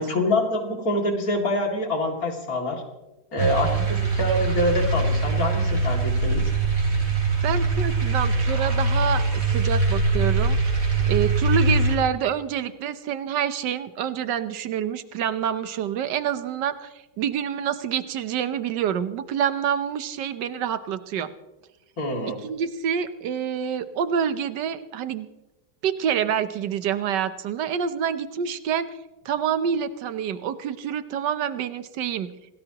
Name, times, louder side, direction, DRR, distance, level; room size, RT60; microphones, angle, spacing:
voice 1, 0.0-2.8 3.3-6.5 22.0-22.4, left 1 dB, 55° left, 2 dB, 3.0 m, -25 dB
sound 1, 3.4-12.0, right 3 dB, 35° right, 3.3 m, -23 dB
voice 2, 3.4-3.9 7.4-10.7 11.1-16.9 17.2-21.3 22.4-25.3 25.8-28.9 29.2-32.3, right 8 dB, 80° right, 12 dB, 1.5 m, -27 dB
26.5 x 18.0 x 3.0 m, 1.0 s
omnidirectional pair, 1.8 m